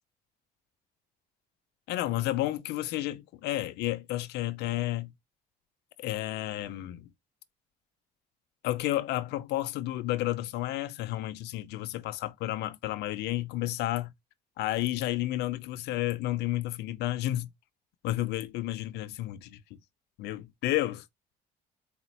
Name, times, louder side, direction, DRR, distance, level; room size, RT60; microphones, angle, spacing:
voice 1, 1.9-5.1 6.0-7.1 8.6-14.1 14.6-17.5 18.0-19.6 20.2-21.0, left 15 dB, 80° left, 0.5 m, -31 dB
4.2 x 2.3 x 4.1 m
cardioid pair, 110°, 17 cm